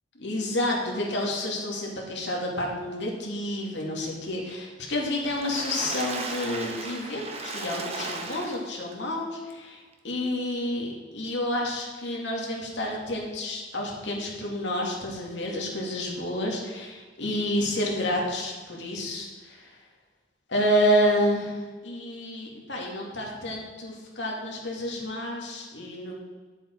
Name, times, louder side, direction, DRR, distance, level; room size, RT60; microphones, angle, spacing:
voice 1, 0.2-19.7 20.5-26.1, left 1 dB, 70° left, -1 dB, 2.4 m, -29 dB
Water / Splash splatter, 5.1-8.9 9.5-9.6 9.9-10.0, right 3 dB, 35° right, 1.1 m, -35 dB
10.0 x 7.6 x 4.6 m, 1.4 s
head